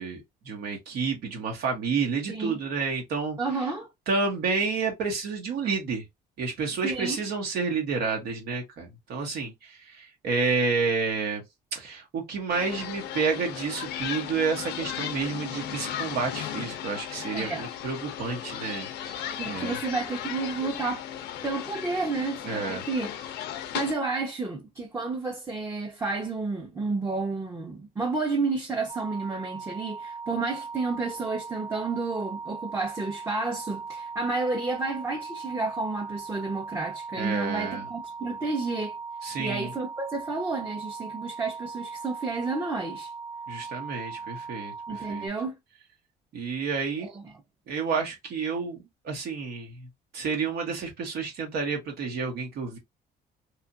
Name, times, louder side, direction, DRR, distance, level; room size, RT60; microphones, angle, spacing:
voice 1, 0.0-3.4 4.1-6.0 6.4-11.4 11.7-19.8 22.5-22.8 37.2-37.8 39.2-39.7 43.5-45.3 46.3-47.1 47.7-49.9 50.1-52.8, right 4 dB, 70° right, 0.9 m, -30 dB
voice 2, 3.4-3.9 6.8-7.2 17.3-17.6 19.4-21.1 21.4-23.1 23.7-38.9 39.4-43.1 44.9-45.5 47.0-47.2, right 3 dB, 15° right, 0.7 m, -31 dB
sound 1, 12.5-23.9, left 10 dB, 85° left, 0.5 m, -36 dB
sound 2, 28.9-45.3, right 4 dB, 40° right, 0.8 m, -39 dB
2.9 x 2.4 x 2.4 m
cardioid pair, 110°, 17 cm